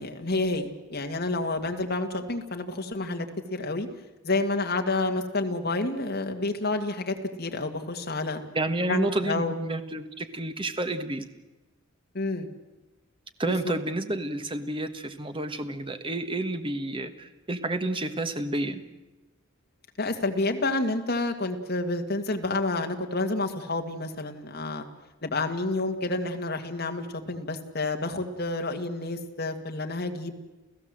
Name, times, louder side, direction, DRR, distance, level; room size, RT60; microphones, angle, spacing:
voice 1, 0.0-3.9 4.2-8.4 8.9-9.6 12.1-12.5 13.5-13.7 20.0-24.9 25.2-30.3, left 2 dB, 55° left, 4 dB, 2.1 m, -29 dB
voice 2, 8.5-11.2 13.4-18.8, right 1 dB, 25° right, 9 dB, 1.4 m, -30 dB
29.0 x 15.5 x 7.7 m, 1.1 s
head